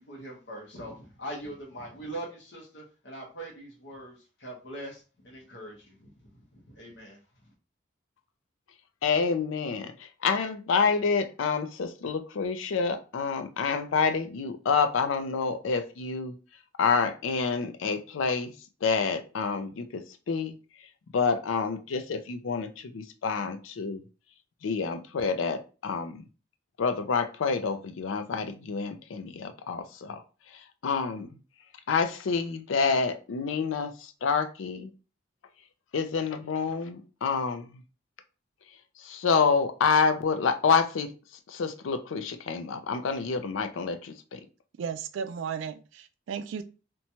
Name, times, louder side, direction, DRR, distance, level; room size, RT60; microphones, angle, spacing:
voice 1, 0.0-7.2, right 1 dB, 65° left, -3 dB, 0.8 m, -42 dB
voice 2, 9.0-16.4 16.8-18.5 18.8-20.0 20.3-20.5 21.1-24.0 24.6-26.2 26.8-30.2 30.5-31.4 31.9-34.9 35.9-37.8 39.0-41.1 41.5-44.4, left 5 dB, 85° left, 9 dB, 0.4 m, -28 dB
voice 3, 44.8-46.6, right 7 dB, 75° right, 10 dB, 0.3 m, -35 dB
2.9 x 2.2 x 2.7 m, 0.34 s
head